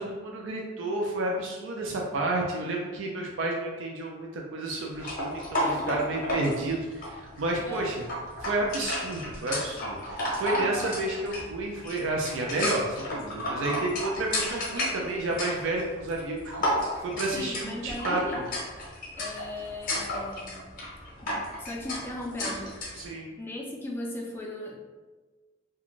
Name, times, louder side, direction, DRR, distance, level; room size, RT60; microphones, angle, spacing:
voice 1, 0.0-7.9 8.4-16.4 17.0-18.4 23.0-23.3, right 2 dB, 90° right, -1 dB, 0.4 m, -31 dB
sound 1, 5.0-23.1, left 1 dB, 45° left, 0.6 m, -33 dB
voice 2, 5.5-6.4 7.6-7.9 10.4-11.0 17.3-18.4 19.1-20.7 21.2-23.0 23.4-24.8, left 1 dB, 10° left, -2 dB, 0.3 m, -37 dB
2.4 x 2.3 x 2.9 m, 1.3 s
head